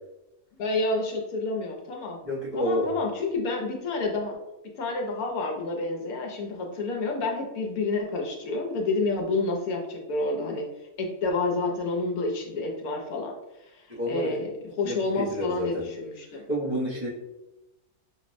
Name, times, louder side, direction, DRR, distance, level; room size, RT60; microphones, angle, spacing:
voice 1, 0.6-2.2 2.5-4.4 4.7-10.7 11.0-13.3 13.7-16.4, left 3 dB, 70° left, 1 dB, 1.0 m, -29 dB
voice 2, 2.2-2.9 13.9-14.4 14.8-15.9 16.5-17.1, equal, 35° right, -9 dB, 0.5 m, -29 dB
5.9 x 2.0 x 2.5 m, 0.97 s
omnidirectional pair, 1.8 m